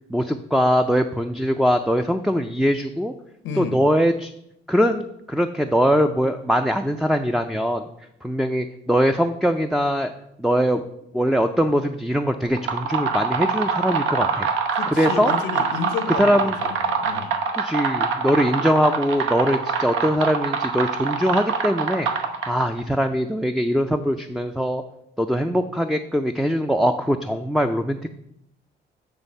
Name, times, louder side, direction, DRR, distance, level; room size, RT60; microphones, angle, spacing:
voice 1, 0.1-3.1 3.6-4.3 4.7-7.9 8.2-10.1 10.4-10.8 11.1-14.5 14.9-15.3 16.2-16.6 17.5-22.1 22.5-24.8 25.2-28.1, equal, ahead, 6 dB, 0.4 m, -22 dB
voice 2, 3.4-3.8 14.7-17.3, left 5 dB, 90° left, 8 dB, 0.8 m, -31 dB
sound 1, 12.5-22.8, right 5 dB, 80° right, 0.9 m, -25 dB
9.0 x 3.4 x 5.4 m, 0.77 s
cardioid pair, 90°, 20 cm